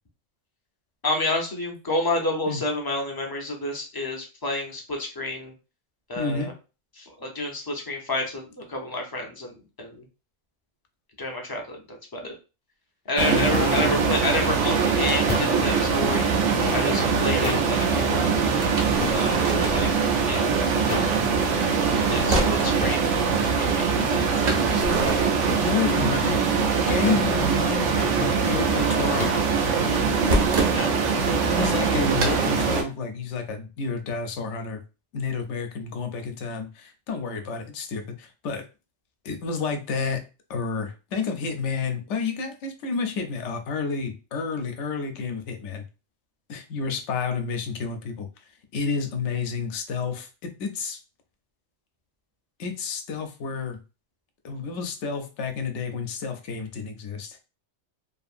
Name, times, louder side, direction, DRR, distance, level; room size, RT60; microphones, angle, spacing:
voice 1, 1.0-5.5 6.1-6.5 7.0-9.5 9.8-10.0 11.2-12.3 13.1-16.3 16.7-18.3 19.1-19.9 20.2-20.5 22.1-23.1 23.4-23.9 24.4-24.5 30.7-30.9, left 2 dB, 25° left, 1 dB, 0.5 m, -29 dB
voice 2, 6.2-6.5 13.3-13.9 16.9-17.3 24.9-25.1 25.6-29.4 31.3-34.8 35.1-38.6 39.2-40.2 40.5-45.8 46.5-48.3 48.7-51.0 52.6-53.8 54.4-57.4, left 4 dB, 80° left, 6 dB, 0.9 m, -30 dB
sound 1, 13.2-32.8, right 5 dB, 85° right, 0.9 m, -23 dB
sound 2, 13.5-13.7 15.3-15.6 17.4-17.8 19.0-19.2 20.9-21.2 22.8-23.0 25.1-25.3 27.0-27.3 29.2-29.4, left 4 dB, 50° left, 0.9 m, -31 dB
sound 3, 18.6-20.0 21.4-22.7 24.5-26.1 26.4-27.3 27.5-30.8 32.2-32.4, right 2 dB, 45° right, 0.6 m, -29 dB
2.8 x 2.5 x 2.4 m, 0.31 s
omnidirectional pair, 1.2 m